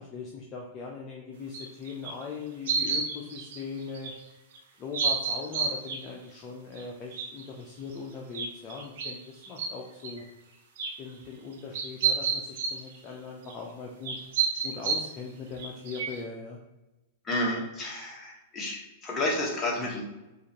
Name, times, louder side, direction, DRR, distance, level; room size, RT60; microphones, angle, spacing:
voice 1, 0.0-4.1 4.8-10.2 11.0-14.2 14.6-16.6, left 5 dB, 35° left, -1 dB, 0.6 m, -40 dB
sound 1, 1.5-2.1 2.7-4.1 4.5-4.6 4.9-6.1 6.8-6.9 7.1-7.4 7.9-8.0 8.3-9.1 9.4-9.7 10.0-10.3 10.8-10.9 11.5-13.0 13.5-13.6 14.0-15.1 15.6-16.2, right 6 dB, 65° right, 0.8 m, -30 dB
voice 2, 17.3-20.0, left 1 dB, 20° left, -3 dB, 1.1 m, -31 dB
4.7 x 2.5 x 2.8 m, 1.0 s
hypercardioid pair, 125°, 0 cm